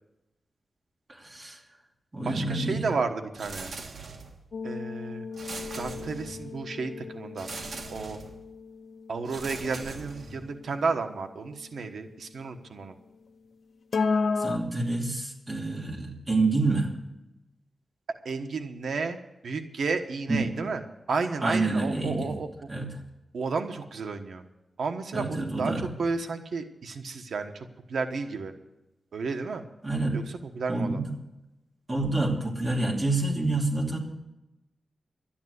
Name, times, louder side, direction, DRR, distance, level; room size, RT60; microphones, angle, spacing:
voice 1, 1.1-1.6 2.1-2.9 14.4-16.9 20.3-20.6 21.4-22.3 22.7-22.9 25.1-25.9 29.8-30.2 30.7-31.1 31.9-34.0, right 2 dB, 25° right, 0 dB, 2.7 m, -28 dB
voice 2, 2.3-3.7 4.6-5.3 5.8-7.5 7.9-8.2 9.1-13.0 18.2-20.8 21.1-22.5 23.3-24.4 24.8-28.5 29.1-29.7 30.1-31.0, right 4 dB, 90° right, 6 dB, 1.2 m, -32 dB
sound 1, 3.3-4.5 5.3-6.6 7.4-8.4 9.2-10.6, right 3 dB, 75° right, 1.7 m, -41 dB
sound 2, 4.5-10.8 13.9-14.6, left 4 dB, 60° left, 0.7 m, -33 dB
12.5 x 10.5 x 8.2 m, 0.93 s
wide cardioid pair, 155°, 0 cm